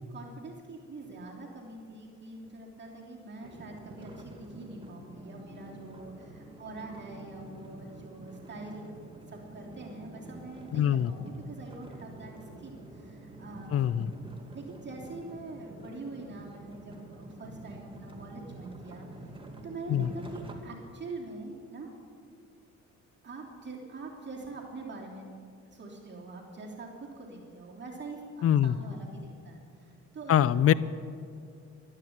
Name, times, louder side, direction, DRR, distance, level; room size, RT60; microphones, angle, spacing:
voice 1, 0.1-8.9 9.3-12.3 12.6-13.8 14.5-19.0 19.6-21.9 23.2-25.3 25.7-30.7, right 3 dB, 35° right, -2 dB, 3.2 m, -44 dB
sound 1, 3.4-20.5, right 2 dB, 15° right, 2.1 m, -47 dB
voice 2, 10.7-11.1 13.7-14.1 19.9-20.1 28.4-28.8 30.3-30.7, left 10 dB, 50° left, 19 dB, 0.5 m, -23 dB
12.0 x 12.0 x 8.8 m, 2.4 s
cardioid pair, 90°, 30 cm